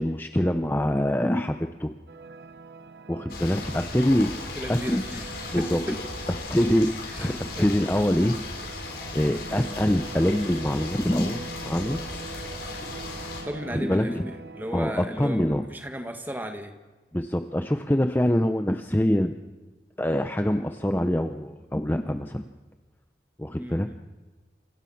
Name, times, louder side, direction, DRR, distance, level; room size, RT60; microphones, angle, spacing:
voice 1, 0.0-1.9 3.1-4.3 4.7-5.0 5.5-6.0 6.5-8.4 9.1-12.0 13.7-14.3 14.7-15.6 17.1-19.4 20.0-22.5 23.4-23.9, equal, 10° left, 7 dB, 0.7 m, -25 dB
sound 1, 2.1-14.8, right 3 dB, 70° right, 0.9 m, -42 dB
sound 2, 3.3-13.4, left 3 dB, 60° left, 5.7 m, -37 dB
voice 2, 4.6-6.0 7.1-7.7 9.5-9.6 12.6-12.8 13.4-16.8 23.6-23.9, equal, 10° right, 6 dB, 1.9 m, -36 dB
28.0 x 27.5 x 5.9 m, 1.2 s
head